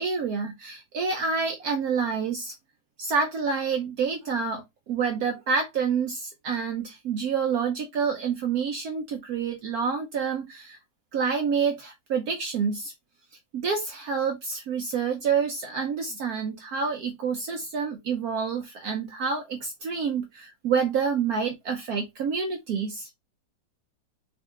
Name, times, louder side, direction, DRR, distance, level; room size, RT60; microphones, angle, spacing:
voice 1, 0.0-2.5 3.0-10.8 11.1-12.9 13.5-23.1, right 6 dB, 65° right, 1.1 m, -28 dB
3.5 x 2.8 x 3.6 m
omnidirectional pair, 1.9 m